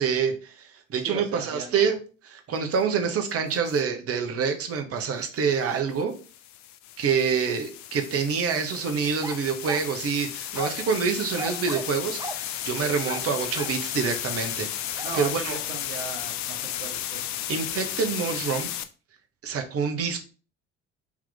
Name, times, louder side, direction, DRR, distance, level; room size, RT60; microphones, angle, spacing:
voice 1, 0.0-2.0 2.2-6.1 7.0-15.6 17.5-18.7 19.4-20.3, right 6 dB, 40° right, 5 dB, 0.9 m, -27 dB
voice 2, 1.0-1.9 15.0-17.3, right 5 dB, 80° right, 2 dB, 0.9 m, -38 dB
sound 1, 3.5-3.8 6.0-18.8, left 11 dB, 55° left, 0.5 m, -34 dB
sound 2, 9.2-9.9 10.5-10.9 11.4-11.9 12.2-12.4 13.0-13.8 15.0-15.2, right 3 dB, 10° right, 0.4 m, -37 dB
3.6 x 3.0 x 3.9 m, 0.36 s
hypercardioid pair, 55°, 35 cm